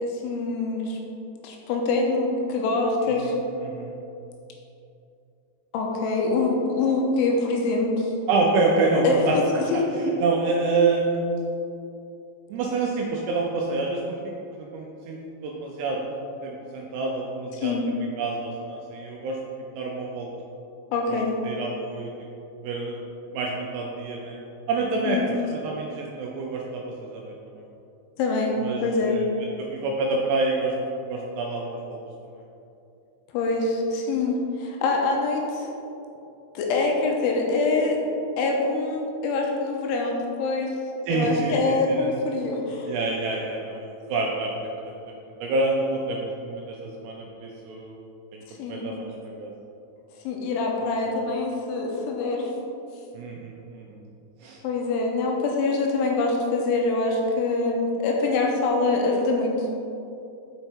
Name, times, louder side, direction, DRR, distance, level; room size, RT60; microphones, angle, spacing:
voice 1, 0.0-1.0 1.4-3.3 5.7-8.1 9.0-9.2 9.6-9.8 17.6-17.8 20.9-21.3 25.1-25.3 28.2-29.2 33.3-35.7 36.5-38.0 38.4-40.7 41.1-42.9 48.5-48.9 50.2-52.5 54.6-59.7, left 3 dB, 85° left, 0 dB, 3.3 m, -25 dB
voice 2, 3.2-3.9 8.3-9.6 10.0-11.2 12.5-16.0 16.4-17.7 18.2-19.4 19.8-20.3 21.1-21.2 21.4-22.3 22.6-23.0 23.3-24.4 24.7-27.6 28.6-32.0 41.1-42.1 42.8-45.2 45.4-48.0 48.3-49.5 51.0-51.1 53.1-54.0 54.4-54.6, right 3 dB, 80° right, -1 dB, 2.4 m, -27 dB
6.5 x 5.7 x 4.5 m, 2.7 s
omnidirectional pair, 5.4 m